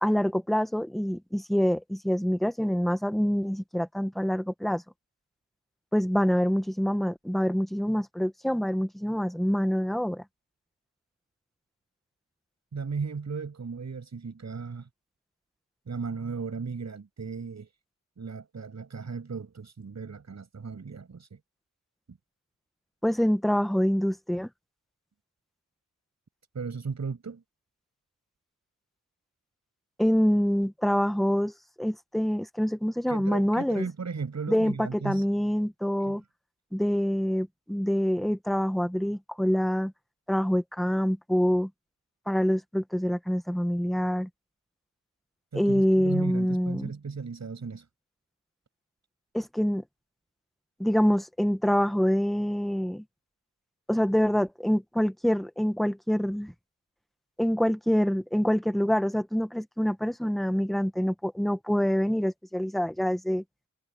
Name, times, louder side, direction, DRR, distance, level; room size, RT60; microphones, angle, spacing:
voice 1, 0.0-4.8 5.9-10.2 23.0-24.5 30.0-31.5 31.8-33.9 34.5-36.2 36.7-39.9 40.3-41.7 42.3-44.3 45.5-46.9 49.3-49.8 50.8-53.0 53.9-56.5 57.4-63.4, equal, ahead, 1.3 m, -26 dB
voice 2, 12.7-14.9 15.9-17.7 18.2-21.4 22.1-22.2 26.5-27.4 33.1-35.2 36.1-36.2 45.5-47.9, right 5 dB, 65° right, 7.6 m, -36 dB
wide cardioid pair, 125°, 30 cm